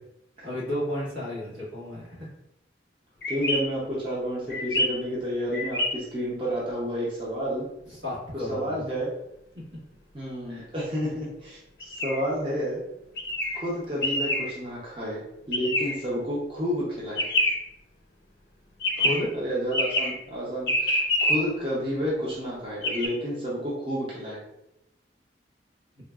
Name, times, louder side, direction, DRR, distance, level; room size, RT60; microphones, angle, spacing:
voice 1, 0.4-2.3 7.9-8.8 9.5-9.6 10.5-10.7 19.0-19.3, left 1 dB, 80° right, -7 dB, 1.5 m, -32 dB
sound 1, 3.2-3.6 4.5-4.9 5.5-5.9 11.8-12.2 13.2-13.6 14.0-14.5 15.5-15.9 17.2-17.6 18.8-19.2 19.7-20.1 20.7-21.4 22.8-23.1, left 1 dB, 60° left, 0.6 m, -25 dB
voice 2, 3.3-7.7 8.5-9.1 10.1-12.8 13.5-15.2 15.5-17.3 19.3-24.4, equal, 30° right, -7 dB, 0.6 m, -30 dB
3.8 x 2.3 x 2.3 m, 0.85 s
head